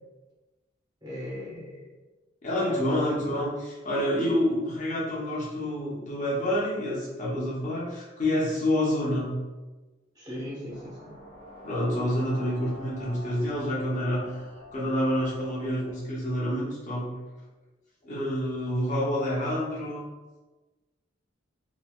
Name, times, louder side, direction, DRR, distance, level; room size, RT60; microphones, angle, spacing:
voice 1, 1.0-1.8 2.7-3.4 10.1-11.1, equal, 20° right, -6 dB, 0.8 m, -38 dB
voice 2, 2.4-9.3 11.6-14.4 14.7-17.1 18.0-20.0, left 1 dB, 40° left, -5 dB, 0.8 m, -28 dB
sound 1, 10.7-15.9, left 1 dB, 50° right, 1.3 m, -47 dB
3.0 x 2.6 x 2.3 m, 1.2 s
head